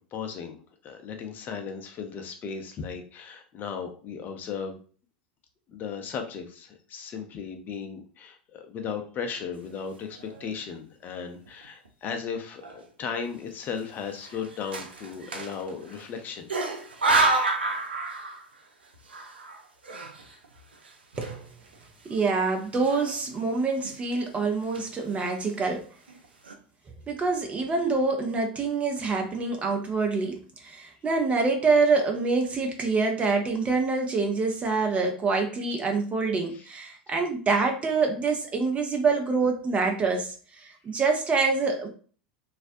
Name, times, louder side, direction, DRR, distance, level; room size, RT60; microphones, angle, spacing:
voice 1, 0.1-4.8 5.7-16.5 36.5-36.7, left 6 dB, 35° left, 0.6 m, -36 dB
sound 1, 10.0-10.6 11.1-11.2 11.5-12.2 12.6-12.8 13.8-16.1 16.5-18.6 18.9-21.8 22.1-22.2 22.7-23.5 23.8-24.2 24.5-25.1 25.7-25.8 26.1-26.5, right 2 dB, 80° right, 0.4 m, -30 dB
voice 2, 22.0-25.8 27.1-41.9, right 4 dB, 25° right, 0.5 m, -26 dB
2.4 x 2.1 x 2.6 m
figure-of-eight pair, 85°, 5 cm